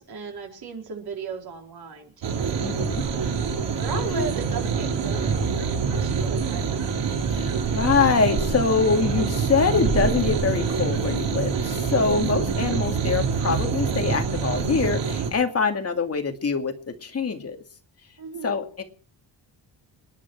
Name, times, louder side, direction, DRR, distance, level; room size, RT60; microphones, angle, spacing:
voice 1, 0.0-2.7 3.7-6.8 18.2-18.6, right 6 dB, 60° right, 2 dB, 4.4 m, -36 dB
sound 1, 2.2-15.3, right 5 dB, 75° right, 4.2 m, -25 dB
voice 2, 2.6-3.0 3.9-4.3 7.3-16.7 17.0-17.6 18.4-18.8, left 5 dB, 35° left, 4 dB, 2.4 m, -24 dB
27.0 x 11.0 x 4.8 m, 0.43 s
wide cardioid pair, 175°, 43 cm